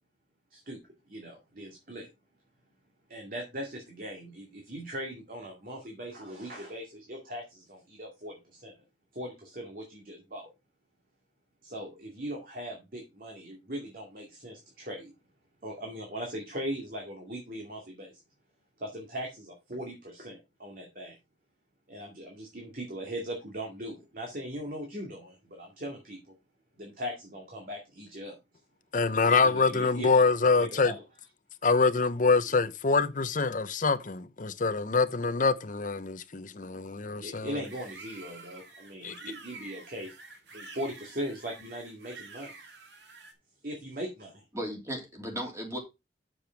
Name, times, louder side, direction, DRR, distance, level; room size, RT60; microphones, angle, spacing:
voice 1, 1.1-2.1 3.1-8.8 9.1-10.5 11.6-15.1 15.6-18.1 18.8-21.1 21.9-26.3 26.8-28.4 29.4-30.2 30.6-30.9 37.2-40.1 40.5-42.5 43.6-44.4, equal, 50° right, 2.4 m, -39 dB
voice 2, 28.9-30.9 31.6-37.6 39.0-39.2, left 4 dB, 50° left, 0.7 m, -25 dB
sound 1, 37.6-43.3, right 4 dB, 85° right, 2.1 m, -48 dB
voice 3, 44.5-45.8, equal, 15° right, 2.9 m, -36 dB
7.6 x 6.9 x 4.6 m
head